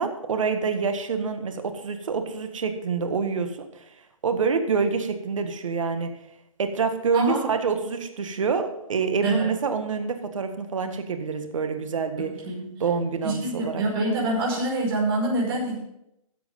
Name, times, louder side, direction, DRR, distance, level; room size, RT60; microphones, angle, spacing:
voice 1, 0.0-3.7 4.2-6.1 6.6-12.3 12.8-13.8, right 5 dB, 65° right, 8 dB, 1.7 m, -26 dB
voice 2, 12.2-12.7 13.2-15.8, right 1 dB, 45° right, -2 dB, 5.3 m, -26 dB
13.5 x 8.0 x 5.5 m, 0.83 s
hypercardioid pair, 140°, 18 cm